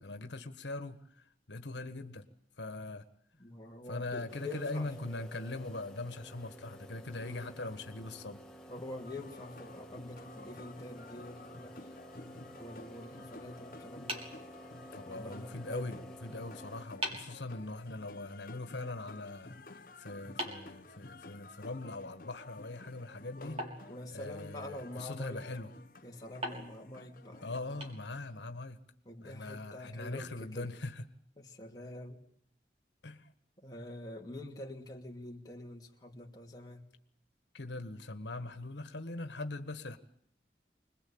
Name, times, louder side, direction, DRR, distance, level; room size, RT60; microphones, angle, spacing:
voice 1, 0.0-2.2 2.6-3.0 3.9-8.4 14.9-23.6 24.1-25.7 27.4-28.8 29.2-31.0 33.0-33.3 37.5-40.0, left 2 dB, 85° left, 8 dB, 1.6 m, -41 dB
voice 2, 3.4-4.9 7.2-7.6 8.7-11.9 12.5-14.3 15.0-15.9 23.3-25.4 26.0-27.8 29.1-30.7 31.4-32.2 33.6-36.9, left 1 dB, 20° left, -1 dB, 2.7 m, -46 dB
sound 1, 4.3-16.9, equal, 5° left, 1.7 m, -52 dB
sound 2, 9.0-27.6, left 2 dB, 50° left, 1.1 m, -52 dB
sound 3, 14.1-15.2 16.4-16.5 17.0-17.4 20.4-21.6 23.6-24.7 26.4-28.5, right 1 dB, 35° right, 4.1 m, -43 dB
26.0 x 20.5 x 8.8 m, 0.65 s
head